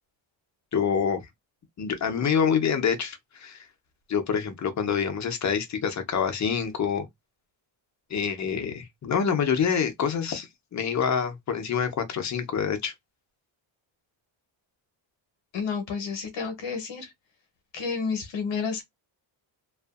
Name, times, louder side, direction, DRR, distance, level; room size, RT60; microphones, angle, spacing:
voice 1, 0.7-1.2 1.8-3.7 4.1-7.1 8.1-12.9, left 7 dB, 35° left, 0.6 m, -26 dB
voice 2, 15.5-17.1 17.7-18.8, left 5 dB, 65° left, 0.9 m, -30 dB
2.6 x 2.4 x 2.4 m
wide cardioid pair, 175°, 48 cm